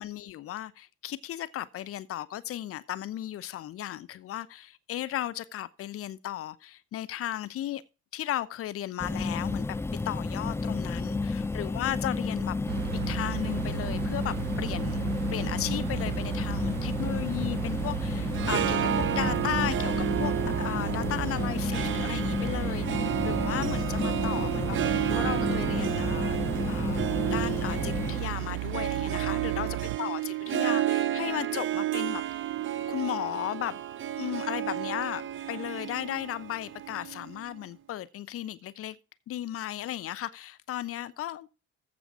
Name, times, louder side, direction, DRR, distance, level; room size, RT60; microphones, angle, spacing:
voice 1, 0.0-7.8 8.1-9.8 10.0-12.6 13.1-15.0 15.3-26.4 26.6-32.2 32.9-33.8 34.2-39.0 39.3-41.5, left 13 dB, 40° left, 0.8 m, -35 dB
sound 1, 9.0-28.2, left 3 dB, 5° left, 0.6 m, -32 dB
sound 2, 12.7-30.0, right 20 dB, 70° right, 0.5 m, -35 dB
Harp, 18.2-37.6, right 12 dB, 35° right, 0.8 m, -32 dB
14.5 x 5.1 x 4.7 m
figure-of-eight pair, 55°, 35 cm